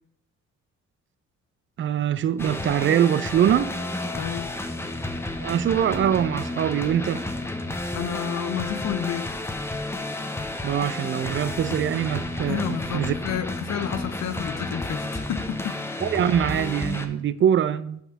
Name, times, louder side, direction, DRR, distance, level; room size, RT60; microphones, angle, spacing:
voice 1, 1.8-3.7 5.4-7.3 10.6-13.1 16.0-18.0, right 9 dB, 40° right, 0.4 m, -23 dB
sound 1, 2.4-17.1, left 2 dB, 10° left, 0.7 m, -31 dB
voice 2, 4.1-4.6 8.0-9.4 12.5-15.8, left 9 dB, 60° left, 0.6 m, -30 dB
5.6 x 4.5 x 5.9 m
cardioid pair, 90°, 30 cm